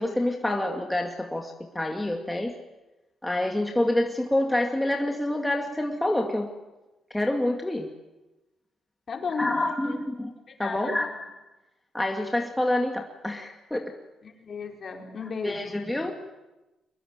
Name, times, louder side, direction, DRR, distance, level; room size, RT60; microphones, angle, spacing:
voice 1, 0.0-2.6 3.2-6.5 7.1-7.9 9.4-10.3 10.6-11.3 11.9-13.9 15.2-16.1, left 1 dB, 10° left, 2 dB, 2.3 m, -27 dB
voice 2, 9.1-9.6 9.8-10.0 10.6-11.1 14.2-15.8, left 5 dB, 45° left, 2 dB, 4.7 m, -34 dB
23.5 x 21.0 x 9.1 m, 1.0 s
cardioid pair, 95°, 0 cm